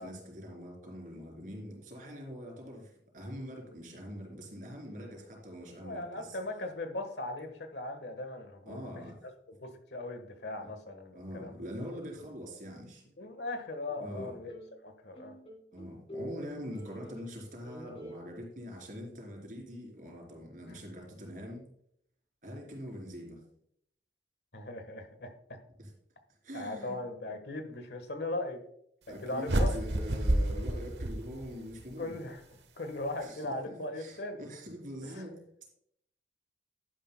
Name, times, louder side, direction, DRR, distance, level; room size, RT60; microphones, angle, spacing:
voice 1, 0.0-6.4 8.7-9.2 10.6-10.7 11.1-13.0 14.0-14.4 15.7-21.7 22.4-23.4 25.8-25.9 26.4-27.0 29.1-32.2 33.2-35.4, equal, 50° right, 0 dB, 3.3 m, -43 dB
voice 2, 5.8-8.9 9.2-9.3 9.6-11.6 13.2-14.5 14.8-15.3 24.5-25.6 26.5-28.6 29.1-29.8 32.0-32.4 32.8-34.4 35.0-35.2, left 2 dB, 75° left, 8 dB, 1.4 m, -39 dB
sound 1, 13.9-14.7 15.2-17.4 17.6-18.2, equal, 35° left, 2.5 m, -46 dB
sound 2, 29.5-31.8, right 1 dB, 90° right, 1.1 m, -29 dB
11.0 x 10.5 x 2.2 m, 0.70 s
head